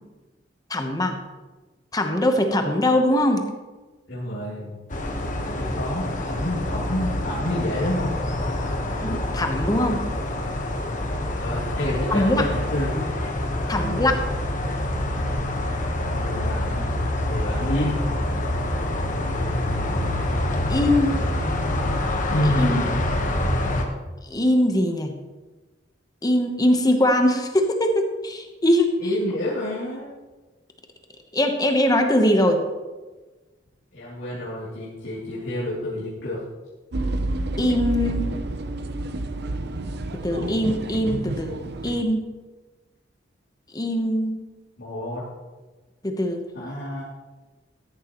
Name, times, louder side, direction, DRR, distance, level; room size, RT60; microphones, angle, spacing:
voice 1, 0.7-1.2 1.9-3.4 9.0-10.1 12.1-12.5 13.7-14.2 20.7-21.2 22.6-22.8 24.3-25.1 26.2-28.9 31.3-32.6 37.6-38.2 40.1-42.2 43.7-44.4 46.0-46.4, left 1 dB, 20° left, 4 dB, 1.0 m, -21 dB
voice 2, 4.1-4.8 5.4-8.2 11.4-13.0 13.6-14.1 16.1-16.9 17.3-18.0 22.2-23.1 29.0-30.1 33.9-36.4 44.8-45.2 46.5-47.0, left 1 dB, 75° left, -9 dB, 3.0 m, -29 dB
sound 1, 4.9-23.8, left 1 dB, 45° left, 1.2 m, -26 dB
sound 2, 36.9-42.0, right 2 dB, 60° right, 0.7 m, -29 dB
13.5 x 11.0 x 3.1 m, 1.2 s
head